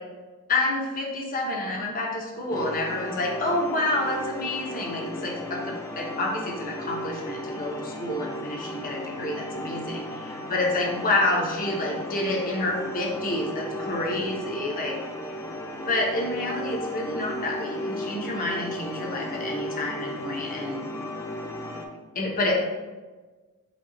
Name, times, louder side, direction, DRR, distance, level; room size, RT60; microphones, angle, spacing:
voice 1, 0.5-14.9 15.9-20.8 22.1-22.5, left 2 dB, 40° left, -1 dB, 0.8 m, -28 dB
sound 1, 2.5-21.9, left 1 dB, 15° left, 0.4 m, -35 dB
5.2 x 2.4 x 3.8 m, 1.3 s
head